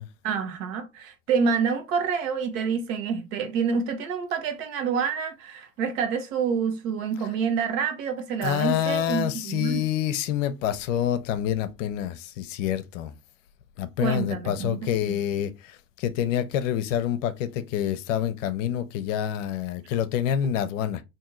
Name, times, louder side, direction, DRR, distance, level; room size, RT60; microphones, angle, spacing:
voice 1, 0.2-9.8 14.0-15.2, right 6 dB, 65° right, 1.1 m, -27 dB
voice 2, 8.4-13.1 13.8-21.0, left 10 dB, 60° left, 0.7 m, -27 dB
2.8 x 2.7 x 3.7 m
hypercardioid pair, 100°, 42 cm